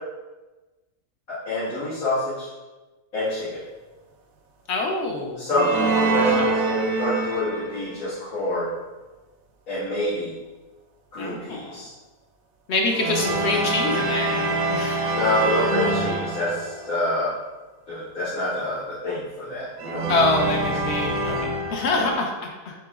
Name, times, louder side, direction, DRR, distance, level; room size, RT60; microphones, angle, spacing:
voice 1, 1.3-2.5 3.1-3.6 5.4-8.7 9.7-10.3 11.1-11.9 15.1-17.3 17.9-20.0 21.9-22.1, left 1 dB, 75° left, -14 dB, 2.0 m, -26 dB
voice 2, 4.7-5.4 6.2-6.6 11.2-11.8 12.7-15.1 15.9-16.0 20.1-22.7, left 2 dB, 60° left, 1 dB, 0.8 m, -26 dB
sound 1, 5.5-7.9 12.9-17.0 19.8-22.2, right 2 dB, 80° right, 1.0 m, -25 dB
7.6 x 2.9 x 2.4 m, 1.2 s
omnidirectional pair, 1.5 m